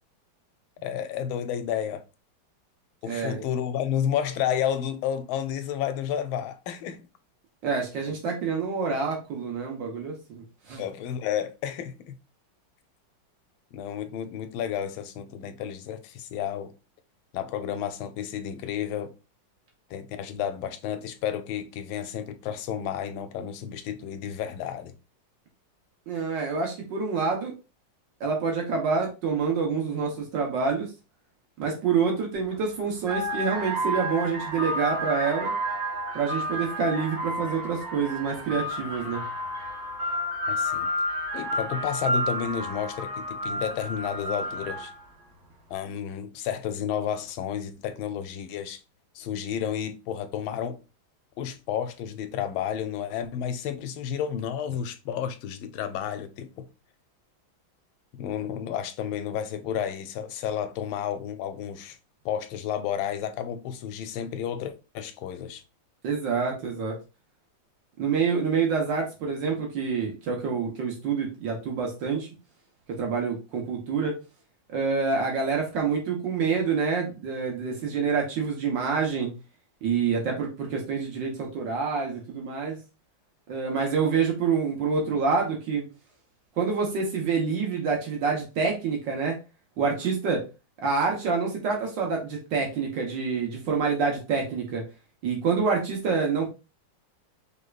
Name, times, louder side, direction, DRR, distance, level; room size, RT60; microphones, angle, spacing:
voice 1, 0.8-2.0 3.0-7.0 10.8-12.1 13.7-16.7 17.3-19.1 19.9-24.9 40.5-40.9 41.3-44.9 45.7-48.8 49.1-50.8 51.4-56.7 58.1-62.0 62.2-65.6, left 9 dB, 90° left, 1.4 m, -31 dB
voice 2, 3.0-3.4 7.6-10.8 26.1-27.5 28.2-30.9 31.6-35.5 36.1-39.2 66.0-67.0 68.0-72.3 73.0-74.2 74.7-79.3 79.8-82.8 83.5-85.8 86.6-89.4 89.8-90.4 90.8-94.8 95.2-96.5, right 5 dB, 70° right, 1.6 m, -27 dB
sound 1, 32.4-32.6 33.0-45.1, equal, 40° right, 1.3 m, -31 dB
5.4 x 3.3 x 2.3 m
omnidirectional pair, 2.2 m